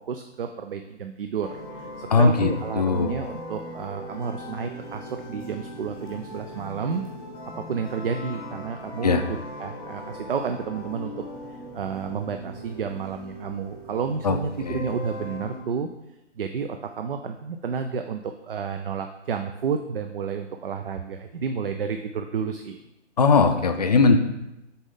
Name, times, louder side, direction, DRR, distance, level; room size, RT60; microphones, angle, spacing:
voice 1, 0.0-7.0 7.5-11.1 11.5-15.9 16.4-22.8, right 6 dB, 50° right, 6 dB, 0.4 m, -31 dB
sound 1, 1.4-15.6, equal, ahead, 0.9 m, -39 dB
voice 2, 2.1-3.2 9.0-9.2 14.2-14.8 23.2-24.2, left 4 dB, 35° left, 7 dB, 0.5 m, -20 dB
6.8 x 4.2 x 3.7 m, 0.92 s
figure-of-eight pair, 145°, 37 cm